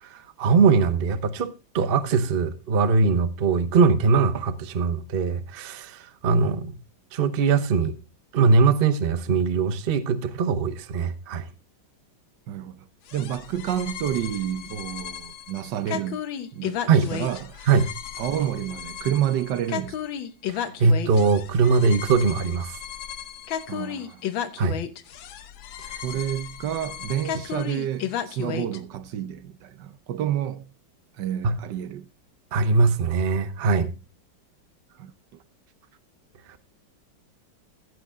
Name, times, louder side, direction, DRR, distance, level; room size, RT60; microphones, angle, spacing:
voice 1, 0.0-6.7 7.1-7.9 8.3-11.5 16.9-17.1 17.7-17.9 20.5-22.8 24.6-24.7 25.9-26.0 31.4-31.6 32.5-33.9, right 4 dB, 45° right, 0.8 m, -21 dB
voice 2, 12.5-12.9 13.1-16.2 16.5-16.8 17.1-17.7 18.2-20.0 23.7-24.2 26.0-30.7 31.2-32.1 35.0-35.1, right 10 dB, 70° right, 1.3 m, -29 dB
sound 1, 13.1-28.8, left 9 dB, 90° left, 1.7 m, -34 dB
15.0 x 8.1 x 3.6 m
omnidirectional pair, 2.1 m